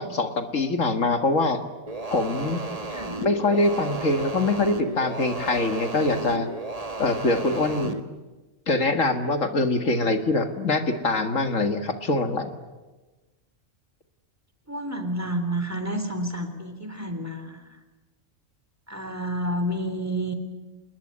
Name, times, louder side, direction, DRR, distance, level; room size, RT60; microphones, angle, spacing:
voice 1, 0.0-1.6 2.1-2.6 3.2-6.5 7.0-8.0 8.7-12.5, left 2 dB, 75° left, 7 dB, 2.3 m, -24 dB
sound 1, 1.9-8.0, right 2 dB, 30° right, 1.8 m, -34 dB
voice 2, 14.7-17.8 18.9-20.3, right 1 dB, 10° right, 7 dB, 3.5 m, -30 dB
27.0 x 21.0 x 9.9 m, 1.2 s
omnidirectional pair, 1.4 m